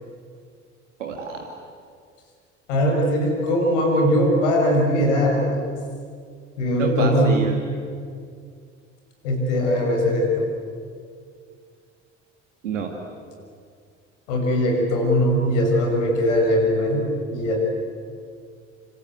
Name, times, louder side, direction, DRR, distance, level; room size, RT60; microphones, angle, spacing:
voice 1, 1.0-1.5 6.8-7.6 12.6-12.9, right 5 dB, 80° right, 2 dB, 2.4 m, -28 dB
voice 2, 2.7-5.6 6.6-7.5 9.2-10.4 14.3-17.6, equal, 75° left, 3 dB, 6.6 m, -20 dB
27.5 x 27.0 x 8.1 m, 2.2 s
figure-of-eight pair, 60°, 37 cm